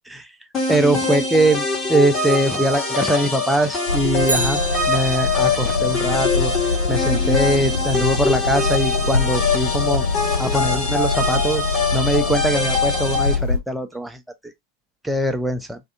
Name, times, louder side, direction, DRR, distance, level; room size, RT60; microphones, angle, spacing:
sound 1, 0.5-13.3, left 3 dB, 25° left, 1.0 m, -23 dB
voice 1, 0.7-4.6 4.9-10.0 10.4-11.6 11.9-14.5 15.0-15.8, right 1 dB, 5° right, 0.4 m, -22 dB
sound 2, 3.9-13.6, left 4 dB, 75° left, 1.0 m, -24 dB
Bicycle, 4.2-5.6 13.9-14.0, right 3 dB, 75° right, 0.4 m, -29 dB
2.5 x 2.3 x 2.3 m
figure-of-eight pair, 90°, 0 cm